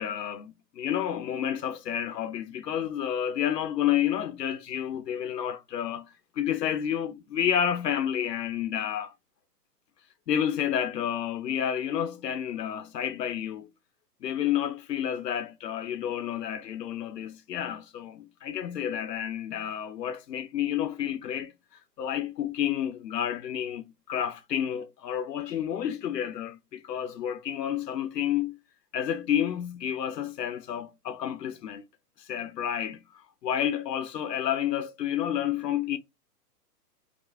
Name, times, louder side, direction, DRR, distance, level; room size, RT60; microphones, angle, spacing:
voice 1, 0.0-6.1 6.4-9.1 10.3-13.7 14.2-21.5 22.0-28.6 28.9-31.8 32.2-33.0 33.4-36.0, left 10 dB, 85° left, 0.7 m, -30 dB
2.8 x 2.6 x 3.3 m
hypercardioid pair, 135°, 48 cm